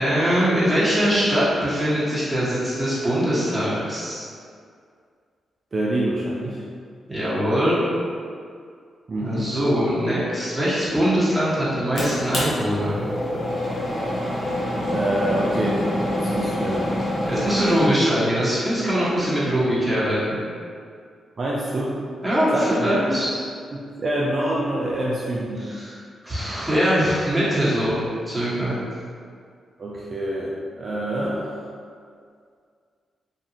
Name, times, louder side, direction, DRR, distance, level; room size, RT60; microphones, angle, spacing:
voice 1, 0.0-4.2 7.1-7.8 9.2-13.1 17.3-20.4 22.2-23.4 25.6-25.9 26.2-28.8, equal, 5° right, -10 dB, 1.3 m, -22 dB
voice 2, 5.7-6.6 9.1-9.5 14.9-16.9 21.4-22.0 22.5-23.2 23.7-25.8 29.8-31.5, right 1 dB, 50° right, -5 dB, 0.4 m, -26 dB
sound 1, 12.0-17.9, left 1 dB, 45° left, 0.9 m, -26 dB
2.8 x 2.5 x 2.8 m, 2.2 s
supercardioid pair, 55°, 0 cm